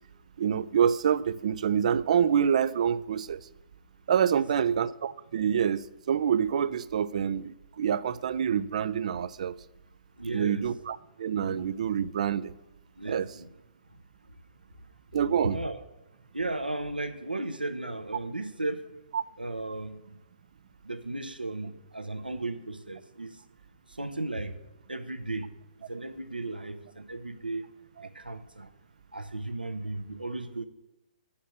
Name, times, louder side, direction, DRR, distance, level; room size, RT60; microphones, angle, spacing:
voice 1, 0.4-3.5 4.1-9.6 10.3-12.6 13.1-13.3 15.1-15.6 19.1-19.2 28.0-28.1, right 8 dB, 50° right, 0.3 m, -27 dB
voice 2, 10.2-10.7 13.0-13.5 15.4-15.8 16.3-18.9 19.4-20.2 20.8-23.4 23.9-24.6 24.9-25.5 25.9-27.7 28.0-28.7 29.1-30.6, right 2 dB, 85° right, 0.8 m, -35 dB
10.0 x 4.3 x 6.0 m
figure-of-eight pair, 125°, 5 cm